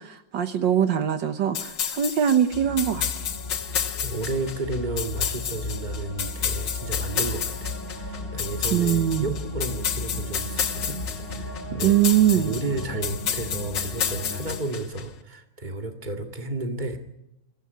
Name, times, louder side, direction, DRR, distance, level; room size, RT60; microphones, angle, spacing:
voice 1, 0.0-3.3 8.7-9.3 11.8-12.5, right 10 dB, 70° right, 9 dB, 1.8 m, -22 dB
sound 1, 1.5-15.0, left 8 dB, 65° left, 1.8 m, -31 dB
sound 2, 2.5-14.6, left 2 dB, 30° left, 4.3 m, -35 dB
voice 2, 4.0-11.0 11.3-12.0 12.3-17.0, right 2 dB, 25° right, 5 dB, 2.2 m, -32 dB
23.5 x 15.5 x 9.4 m, 0.86 s
omnidirectional pair, 2.1 m